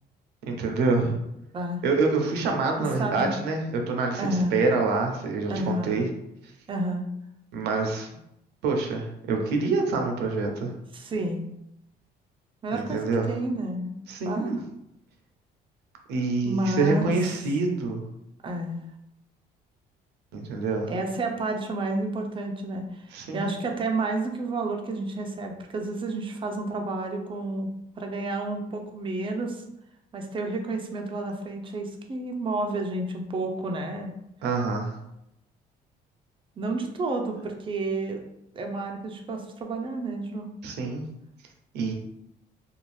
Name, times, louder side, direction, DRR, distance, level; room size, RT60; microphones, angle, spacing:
voice 1, 0.5-1.2 1.8-6.1 7.5-8.1 8.6-10.7 12.7-13.3 14.1-14.6 16.1-18.0 20.3-20.9 23.1-23.5 34.4-35.0 40.6-41.0 41.7-41.9, right 3 dB, 80° right, 3 dB, 0.5 m, -26 dB
voice 2, 4.2-4.6 5.5-6.0 6.7-7.1 10.9-11.5 12.6-14.0 14.2-14.5 16.4-17.1 18.4-18.8 20.9-27.7 28.0-29.6 30.1-34.1 36.6-38.2 38.5-40.5, right 2 dB, 30° right, 3 dB, 0.5 m, -30 dB
2.5 x 2.3 x 3.1 m, 0.82 s
cardioid pair, 110°, 17 cm